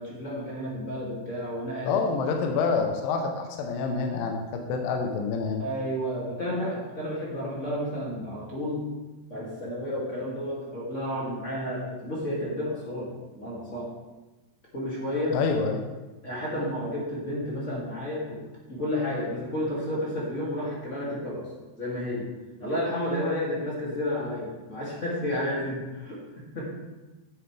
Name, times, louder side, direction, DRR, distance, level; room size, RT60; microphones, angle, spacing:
voice 1, 0.0-1.9 5.6-8.8 9.3-13.9 14.7-15.4 16.2-18.4 18.7-21.5 21.8-22.3 22.6-26.6, left 1 dB, 25° left, -6 dB, 1.8 m, -31 dB
voice 2, 1.9-5.6 15.3-15.9, left 4 dB, 75° left, 3 dB, 2.2 m, -27 dB
12.0 x 9.2 x 3.4 m, 1.1 s
omnidirectional pair, 5.1 m